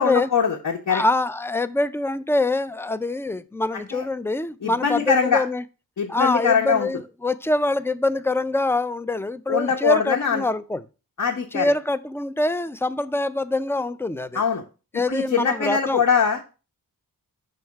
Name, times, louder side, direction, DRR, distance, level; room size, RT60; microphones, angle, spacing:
voice 1, 0.0-1.0 3.7-4.0 4.6-5.4 6.0-6.9 9.5-10.4 11.2-11.7 14.3-14.6 15.1-16.4, left 6 dB, 60° left, 1.0 m, -22 dB
voice 2, 0.9-5.6 6.1-10.8 11.5-14.4 14.9-16.0, left 2 dB, 5° left, 0.3 m, -24 dB
6.3 x 3.4 x 5.7 m
wide cardioid pair, 115°, 35 cm